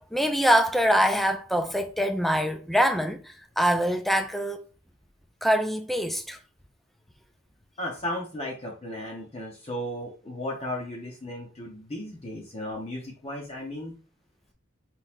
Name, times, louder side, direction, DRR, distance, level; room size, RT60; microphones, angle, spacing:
voice 1, 0.1-3.2 3.6-4.7 5.4-6.4, equal, ahead, 0.4 m, -24 dB
voice 2, 7.8-13.9, left 1 dB, 30° left, 0.9 m, -35 dB
4.2 x 3.9 x 2.5 m
head